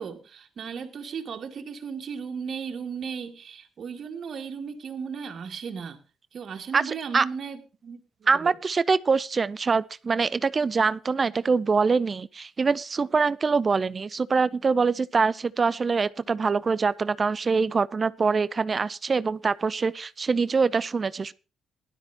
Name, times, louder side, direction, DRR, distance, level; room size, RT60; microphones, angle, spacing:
voice 1, 0.0-6.0 6.3-8.0 8.4-8.5, right 6 dB, 55° right, 2.6 m, -36 dB
voice 2, 6.7-7.3 8.3-21.3, right 4 dB, 35° right, 0.5 m, -24 dB
18.0 x 12.0 x 2.9 m
cardioid pair, 90°, 0 cm